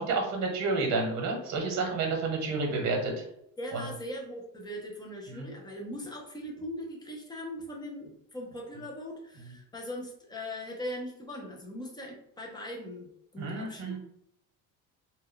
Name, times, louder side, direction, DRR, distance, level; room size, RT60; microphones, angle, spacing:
voice 1, 0.0-3.3 3.7-3.8 5.3-5.5 9.4-9.5 13.4-14.0, right 3 dB, 60° right, 1 dB, 0.8 m, -30 dB
voice 2, 3.6-14.0, left 1 dB, 15° left, 0 dB, 0.4 m, -40 dB
2.2 x 2.1 x 3.6 m, 0.75 s
cardioid pair, 165°, 32 cm